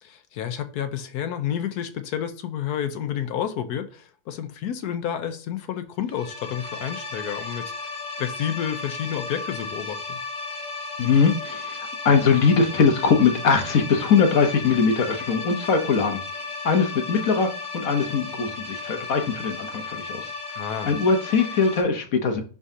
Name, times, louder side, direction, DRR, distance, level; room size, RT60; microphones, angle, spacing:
voice 1, 0.0-7.7 8.2-10.2 20.6-20.9, left 9 dB, 85° left, 1.3 m, -30 dB
sound 1, 6.1-21.8, left 4 dB, 30° left, 1.3 m, -34 dB
voice 2, 11.0-16.2 16.6-20.3 20.9-22.4, left 5 dB, 65° left, 1.4 m, -21 dB
10.5 x 3.6 x 2.8 m
omnidirectional pair, 1.6 m